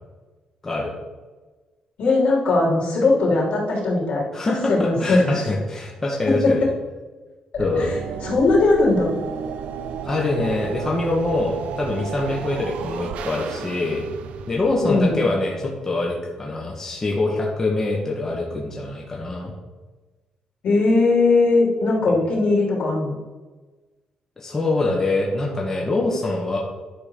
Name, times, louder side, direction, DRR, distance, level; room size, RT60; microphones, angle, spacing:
voice 1, 2.0-4.3 4.7-5.4 6.2-6.5 7.5-7.9 8.2-9.1 14.8-15.3 20.6-23.1, left 3 dB, 65° left, -4 dB, 3.2 m, -19 dB
voice 2, 4.3-6.6 7.6-7.9 10.0-14.1 14.5-19.5 22.1-22.2 24.4-26.6, left 2 dB, 20° left, -2 dB, 1.2 m, -24 dB
sound 1, 7.5-15.7, right 7 dB, 85° right, 0.7 m, -33 dB
11.0 x 3.9 x 6.7 m, 1.3 s
cardioid pair, 155°, 2 cm